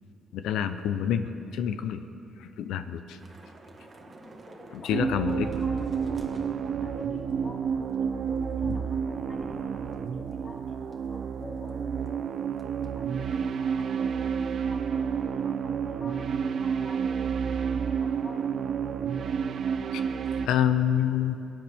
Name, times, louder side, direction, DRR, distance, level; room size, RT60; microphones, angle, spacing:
voice 1, 0.3-2.0 2.4-3.2 4.7-5.5 8.7-8.8 19.9-20.0 20.4-21.4, left 9 dB, 90° left, 10 dB, 0.5 m, -27 dB
Thunder / Rain, 3.2-11.8 12.1-12.2 12.6-12.9, right 2 dB, 35° right, 1.5 m, -47 dB
voice 2, 4.0-6.0 6.8-12.3 12.7-18.5, left 2 dB, 40° left, -3 dB, 3.0 m, -47 dB
sound 1, 4.9-20.5, right 7 dB, 60° right, 0.4 m, -30 dB
23.5 x 8.8 x 3.5 m, 2.8 s
cardioid pair, 90°, 0 cm